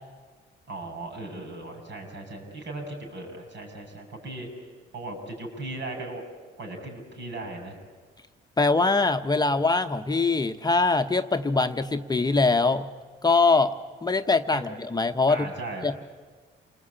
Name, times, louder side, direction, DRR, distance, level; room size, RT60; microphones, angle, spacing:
voice 1, 0.7-4.5 4.9-6.2 6.6-7.8 14.5-14.6 15.3-15.9, right 2 dB, 65° right, 3 dB, 7.4 m, -37 dB
voice 2, 8.6-12.9 13.2-13.7 14.0-15.5 15.8-15.9, left 3 dB, 20° left, 7 dB, 1.0 m, -23 dB
29.0 x 20.0 x 8.7 m, 1.5 s
cardioid pair, 90°, 20 cm